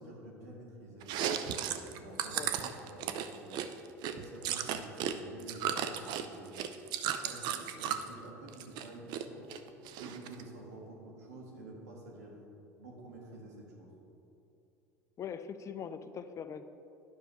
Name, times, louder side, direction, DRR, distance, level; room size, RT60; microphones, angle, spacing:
voice 1, 0.0-3.6 4.0-6.5 7.2-9.6 10.0-12.3 12.8-13.9, right 2 dB, 90° right, -2 dB, 1.5 m, -49 dB
Chewing mastication, 1.0-5.1 5.4-8.1 8.5-9.2 9.5-10.4, right 9 dB, 60° right, 0.5 m, -35 dB
voice 2, 15.2-16.6, left 7 dB, 40° left, 11 dB, 0.5 m, -41 dB
9.9 x 6.3 x 3.1 m, 2.8 s
hypercardioid pair, 80°, 8 cm